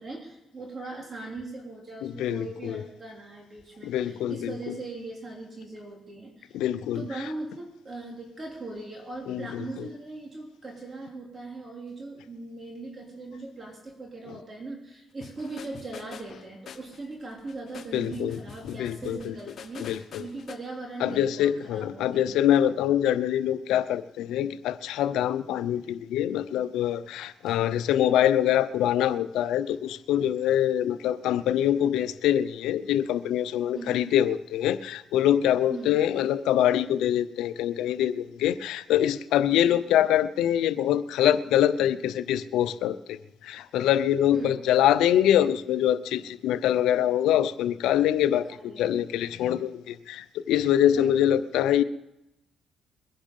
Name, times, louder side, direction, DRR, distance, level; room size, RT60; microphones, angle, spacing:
voice 1, 0.0-6.6 6.9-22.4 27.5-27.6 33.7-34.0 35.7-35.9 39.6-39.8 44.3-44.6 48.3-48.9 50.9-51.2, right 3 dB, 35° right, 0 dB, 3.2 m, -40 dB
voice 2, 2.0-2.8 3.8-4.7 6.5-7.3 9.3-9.6 17.9-18.4 18.7-19.3 19.8-20.2 21.0-43.2 43.4-48.5 48.8-51.8, left 11 dB, 90° left, 14 dB, 0.6 m, -24 dB
sound 1, 15.2-20.5, left 6 dB, 55° left, 1.4 m, -45 dB
22.0 x 10.5 x 5.5 m, 0.93 s
cardioid pair, 90°, 0 cm